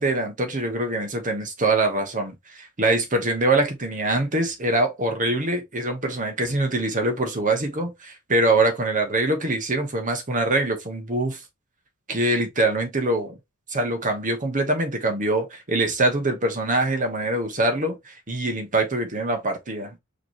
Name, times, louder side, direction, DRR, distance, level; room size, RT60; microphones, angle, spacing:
voice 1, 0.0-11.4 12.1-13.4 13.7-20.0, right 2 dB, 35° right, 1.3 m, -24 dB
5.0 x 3.2 x 3.0 m
head